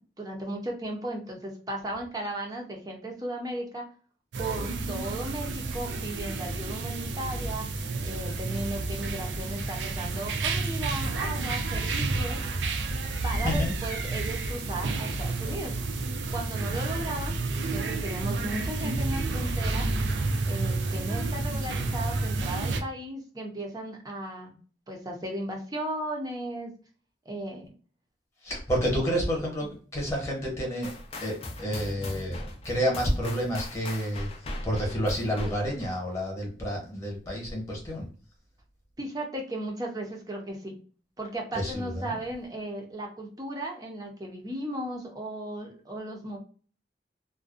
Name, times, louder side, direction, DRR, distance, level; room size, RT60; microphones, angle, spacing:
voice 1, 0.2-3.9 4.4-7.7 8.0-12.4 13.2-15.8 16.3-17.4 17.7-19.9 20.5-24.5 24.9-26.7 27.3-27.7 39.0-40.7 41.2-46.4, right 1 dB, 20° right, 1 dB, 0.6 m, -36 dB
sound 1, 4.3-22.8, right 3 dB, 85° right, 0.4 m, -30 dB
voice 2, 13.4-13.7 28.4-30.9 31.2-34.3 34.6-38.1 41.5-42.2, equal, 15° left, -1 dB, 1.0 m, -29 dB
sound 2, 30.8-35.9, left 1 dB, 30° left, 0.4 m, -39 dB
2.5 x 2.2 x 2.4 m, 0.41 s
head